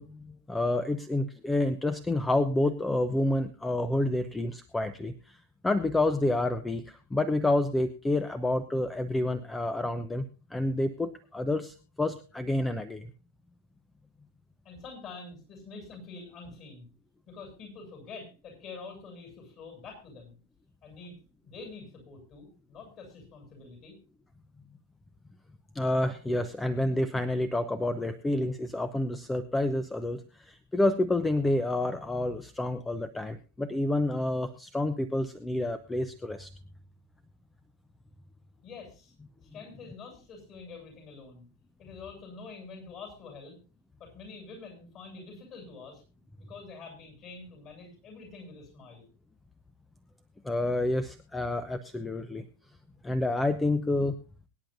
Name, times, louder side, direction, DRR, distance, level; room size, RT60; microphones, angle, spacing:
voice 1, 0.0-5.4 5.6-10.2 10.5-13.1 25.7-36.5 50.4-52.4 53.0-54.1, left 2 dB, 10° left, 13 dB, 0.8 m, -29 dB
voice 2, 14.6-16.9 17.3-20.4 20.8-21.2 21.4-24.0 38.6-39.1 39.4-41.5 41.8-43.6 44.0-46.0 46.3-49.1, left 4 dB, 35° left, 3 dB, 7.8 m, -46 dB
23.5 x 10.0 x 2.6 m, 0.34 s
figure-of-eight pair, 90°, 0 cm